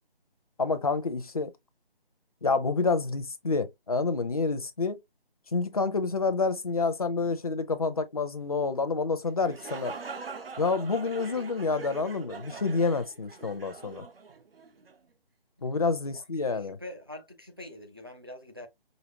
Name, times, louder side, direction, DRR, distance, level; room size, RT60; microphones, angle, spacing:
voice 1, 0.6-1.5 2.4-5.0 5.5-9.9 10.6-14.0 15.6-16.8, left 4 dB, 40° left, 0.6 m, -28 dB
sound 1, 9.3-15.0, right 5 dB, 70° right, 1.0 m, -43 dB
voice 2, 16.5-18.7, left 1 dB, 25° right, 0.5 m, -45 dB
5.2 x 2.7 x 2.8 m
figure-of-eight pair, 170°, 30 cm